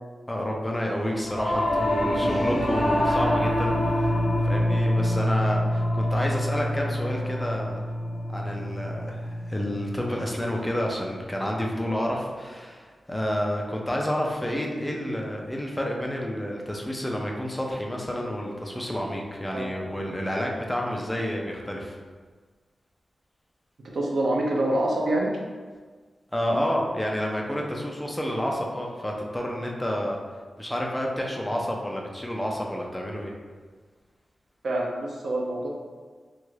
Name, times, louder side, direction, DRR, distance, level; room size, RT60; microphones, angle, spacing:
voice 1, 0.3-4.2 4.4-7.8 8.3-22.0 26.3-30.2 30.6-33.3, equal, 10° left, -1 dB, 0.4 m, -29 dB
Singing / Musical instrument, 1.2-10.8, left 1 dB, 75° left, 0.7 m, -26 dB
voice 2, 23.8-25.3 34.6-35.7, right 1 dB, 65° right, -2 dB, 0.5 m, -26 dB
2.9 x 2.4 x 3.1 m, 1.5 s
wide cardioid pair, 175°, 0 cm